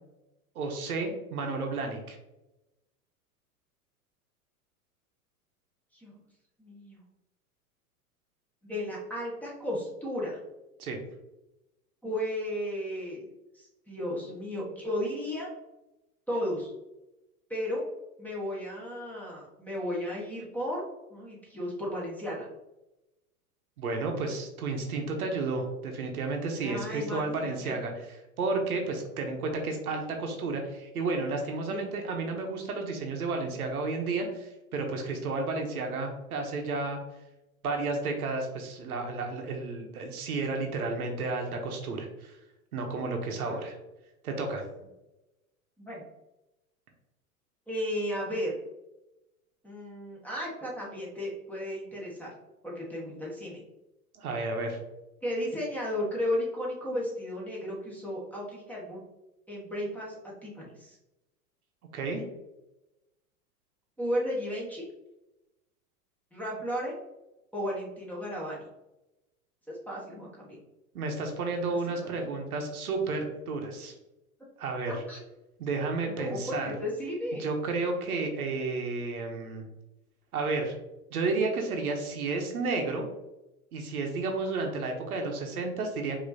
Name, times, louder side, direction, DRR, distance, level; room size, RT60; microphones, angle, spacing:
voice 1, 0.5-2.2 10.8-11.0 23.8-27.9 28.4-37.0 37.6-42.3 42.7-43.8 44.2-44.6 54.1-54.8 61.9-62.2 70.9-73.9 74.6-75.0 75.6-76.7 77.4-79.6 80.3-80.7 81.1-83.0 83.7-86.2, right 3 dB, 75° right, 3 dB, 1.0 m, -32 dB
voice 2, 6.6-7.0 8.6-10.4 12.0-13.3 13.5-15.5 16.3-16.7 17.5-17.8 18.2-20.8 21.1-22.5 26.6-27.7 31.7-31.9 43.5-43.6 45.8-46.0 47.7-48.5 49.6-52.3 52.6-53.6 55.2-59.0 59.5-61.0 64.0-64.9 66.3-67.0 67.5-68.6 69.7-70.6 71.7-72.4 74.8-75.2 76.1-77.5, equal, 5° left, -5 dB, 1.3 m, -34 dB
5.0 x 3.0 x 2.7 m, 0.97 s
figure-of-eight pair, 95°, 45 cm